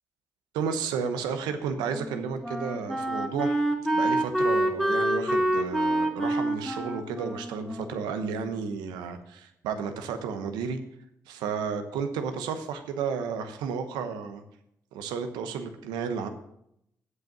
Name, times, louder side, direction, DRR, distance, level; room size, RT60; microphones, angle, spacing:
voice 1, 0.5-3.6 3.9-10.8 11.3-14.4 14.9-16.3, right 6 dB, 85° right, 8 dB, 1.0 m, -32 dB
Wind instrument woodwind instrument, 1.9-8.7, right 1 dB, ahead, 2.3 m, -28 dB
8.2 x 7.8 x 7.3 m, 0.78 s
hypercardioid pair, 45°, 7 cm